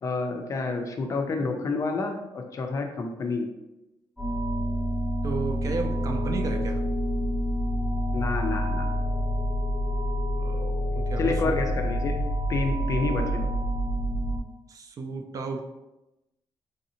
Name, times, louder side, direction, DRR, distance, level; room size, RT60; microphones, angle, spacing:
voice 1, 0.0-3.5 8.1-8.9 11.2-12.2 12.5-13.5, left 3 dB, 40° left, 4 dB, 0.4 m, -29 dB
sound 1, 4.2-14.4, equal, 5° right, 0.8 m, -27 dB
voice 2, 5.2-6.8 10.4-11.5 14.7-15.7, right 4 dB, 40° right, 4 dB, 0.3 m, -33 dB
3.2 x 2.6 x 2.8 m, 0.95 s
cardioid pair, 140°, 9 cm